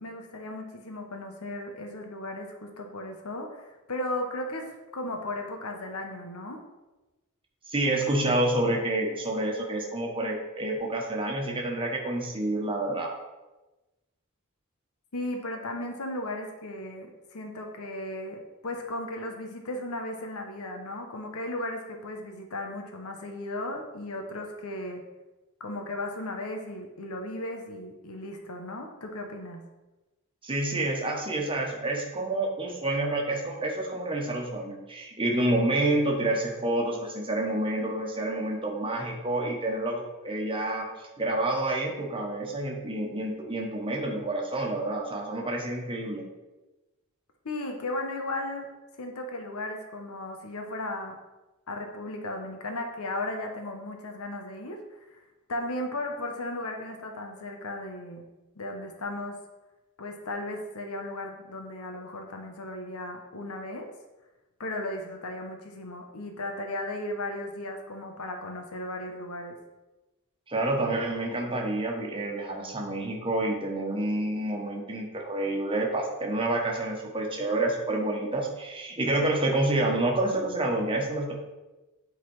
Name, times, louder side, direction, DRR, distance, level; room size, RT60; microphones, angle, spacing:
voice 1, 0.0-6.6 15.1-25.0 25.6-29.7 47.4-48.7 49.0-51.2 51.7-54.8 55.5-58.3 58.6-59.4 60.0-63.9 64.6-69.6, left 1 dB, 80° left, 3 dB, 1.1 m, -36 dB
voice 2, 7.7-13.1 30.4-40.9 41.2-46.2 70.5-81.3, right 1 dB, 25° right, 0 dB, 1.3 m, -28 dB
9.0 x 4.0 x 4.7 m, 1.1 s
head